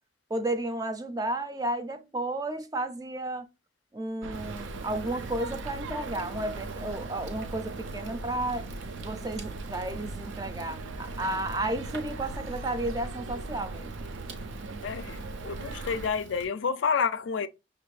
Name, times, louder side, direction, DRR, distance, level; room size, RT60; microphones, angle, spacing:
voice 1, 0.3-3.5 3.9-8.7 9.0-14.1, right 1 dB, 20° right, 0.4 m, -33 dB
sound 1, 4.2-16.1, right 3 dB, 90° right, 0.4 m, -39 dB
Fire, 4.3-16.5, right 2 dB, 70° right, 1.0 m, -46 dB
voice 2, 14.8-17.5, left 6 dB, 80° left, 0.4 m, -29 dB
5.9 x 2.5 x 3.2 m
head